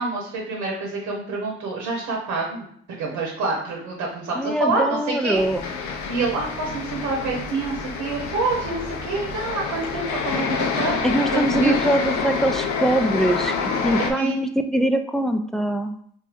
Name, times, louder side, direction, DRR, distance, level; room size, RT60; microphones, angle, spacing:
voice 1, 0.0-5.4 6.1-11.8 14.0-14.4, right 3 dB, 75° right, -2 dB, 1.0 m, -27 dB
voice 2, 4.4-5.6 11.0-15.9, right 1 dB, ahead, 5 dB, 0.4 m, -23 dB
sound 1, 5.3-14.1, left 5 dB, 70° left, 0.6 m, -27 dB
4.5 x 2.6 x 2.5 m, 0.63 s
hypercardioid pair, 45°, 30 cm